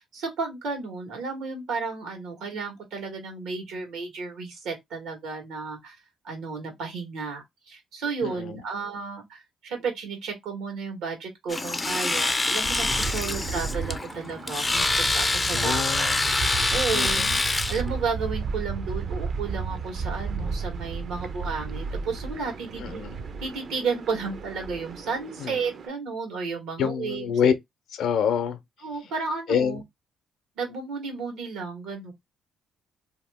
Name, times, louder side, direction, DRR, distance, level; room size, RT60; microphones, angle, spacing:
voice 1, 0.0-5.9 6.2-16.1 16.4-17.2 17.7-23.0 23.4-27.3 28.8-29.8 30.6-32.1, right 5 dB, 90° right, 1.4 m, -33 dB
voice 2, 8.2-8.6 15.5-16.2 16.9-17.4 22.8-23.1 25.4-25.6 26.8-27.5 27.9-28.6 29.5-29.8, left 7 dB, 75° left, 0.6 m, -26 dB
Domestic sounds home sounds, 11.5-17.8, left 2 dB, 20° left, 0.3 m, -26 dB
sound 1, 12.6-25.9, right 5 dB, 55° right, 0.5 m, -34 dB
2.8 x 2.2 x 3.4 m
cardioid pair, 90°, 0 cm